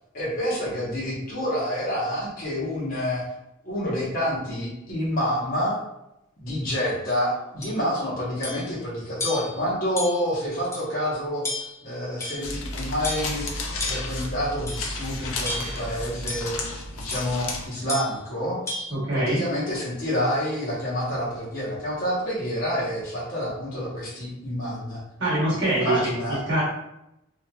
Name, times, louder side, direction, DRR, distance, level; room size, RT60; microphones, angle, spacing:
voice 1, 0.1-3.2 3.6-5.8 6.4-11.4 11.8-13.5 13.8-16.5 16.9-18.6 19.1-25.0 25.7-26.4, equal, 40° left, -8 dB, 0.9 m, -28 dB
sound 1, 7.6-7.8 8.4-8.7 9.2-9.6 10.0-10.3 10.7-10.8 11.4-11.8 12.2-12.6 13.0-13.4 13.8-14.2 14.7-14.9 15.4-15.9 16.3-16.5 17.1-17.3 17.9-18.2 18.7-18.9, left 2 dB, 15° left, 0.3 m, -32 dB
sound 2, 12.4-17.7, left 2 dB, 75° left, 0.5 m, -32 dB
voice 2, 18.9-19.4 25.2-26.1 26.5-26.6, right 1 dB, 55° right, -9 dB, 1.1 m, -23 dB
2.8 x 2.4 x 2.3 m, 0.87 s
head